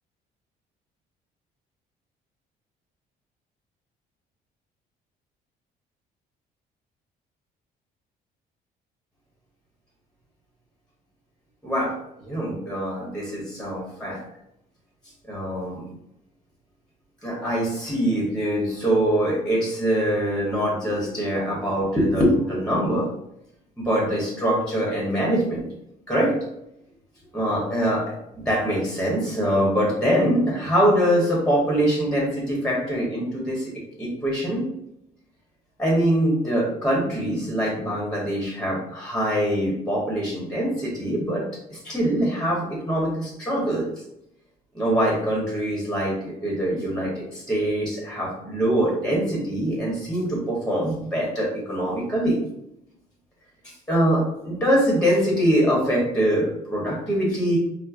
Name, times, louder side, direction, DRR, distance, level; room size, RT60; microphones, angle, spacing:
voice 1, 11.6-11.9 12.2-14.2 15.2-15.8 17.2-23.1 23.8-25.6 26.1-26.3 27.3-33.7 34.0-34.6 35.8-41.4 41.7-43.9 44.7-52.4 53.9-57.6, equal, 5° left, -3 dB, 1.0 m, -23 dB
4.4 x 2.0 x 2.5 m, 0.82 s
cardioid pair, 110°, 17 cm